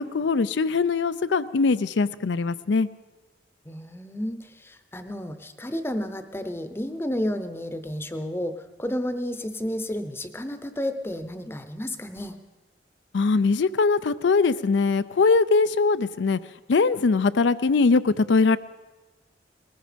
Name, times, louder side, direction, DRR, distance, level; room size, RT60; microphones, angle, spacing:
voice 1, 0.0-2.9 13.1-16.4 16.7-18.6, left 4 dB, 75° left, 14 dB, 0.4 m, -21 dB
voice 2, 3.7-12.4, left 1 dB, 15° left, 9 dB, 0.7 m, -31 dB
19.0 x 14.5 x 5.1 m, 1.2 s
head